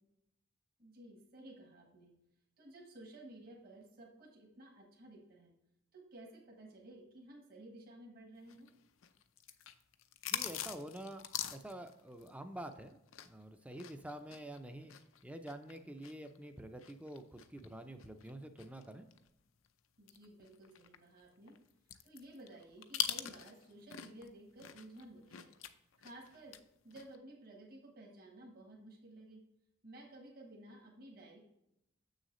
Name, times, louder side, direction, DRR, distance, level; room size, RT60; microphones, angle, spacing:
voice 1, 0.8-2.1 2.6-5.5 5.9-8.7 20.0-21.6 22.0-25.5 26.0-26.6 26.8-29.4 29.8-31.4, right 1 dB, 45° right, -1 dB, 1.4 m, -54 dB
sound 1, 8.5-13.4 13.7-19.3 19.6-19.7 20.1-24.3 24.6-26.6 26.9-27.2, left 10 dB, 80° left, 0.6 m, -43 dB
voice 2, 10.3-11.2 11.5-14.9 15.2-19.1, right 1 dB, 5° right, 7 dB, 0.5 m, -48 dB
7.3 x 6.4 x 3.1 m, 0.84 s
head